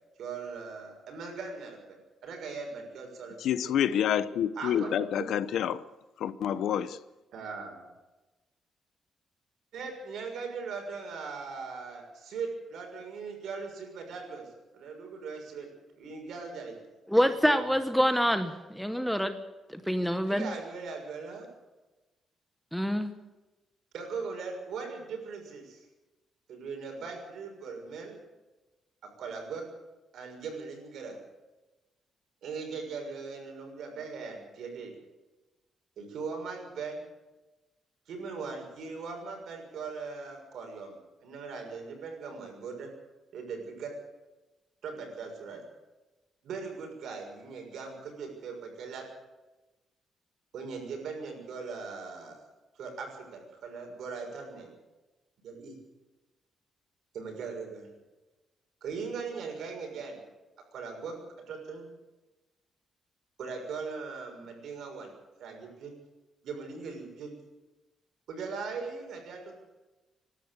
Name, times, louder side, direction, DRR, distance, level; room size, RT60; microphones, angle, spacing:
voice 1, 0.2-3.7 4.5-5.3 7.3-7.8 9.7-14.5 14.7-15.7 16.0-16.8 17.1-17.6 20.3-21.5 23.9-25.8 26.5-28.2 29.2-29.6 30.1-31.2 32.4-34.9 36.0-37.0 38.1-40.9 41.2-42.9 43.3-43.9 44.8-45.6 46.4-49.0 50.5-52.4 52.8-54.7 55.4-55.8 57.1-57.9 58.8-60.2 60.7-61.2 61.5-61.8 63.4-65.1 65.4-65.9 66.4-67.3 68.3-69.6, right 5 dB, 65° right, 3 dB, 6.4 m, -39 dB
voice 2, 3.4-5.8 6.2-7.0, left 9 dB, 70° left, 15 dB, 0.9 m, -28 dB
voice 3, 17.1-19.4 19.7-20.5 22.7-23.1, equal, ahead, 9 dB, 1.0 m, -26 dB
26.5 x 12.5 x 8.2 m, 1.1 s
cardioid pair, 175°, 0 cm